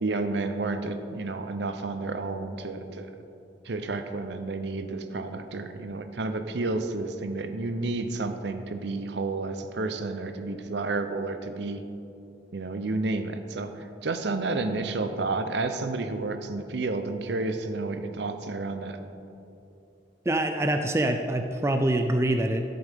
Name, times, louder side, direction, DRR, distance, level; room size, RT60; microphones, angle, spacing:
voice 1, 0.0-3.1 3.6-11.8 12.5-19.0, right 3 dB, 65° right, 8 dB, 0.6 m, -31 dB
voice 2, 20.3-22.7, right 1 dB, 15° right, 6 dB, 0.3 m, -25 dB
13.5 x 7.8 x 3.6 m, 2.8 s
head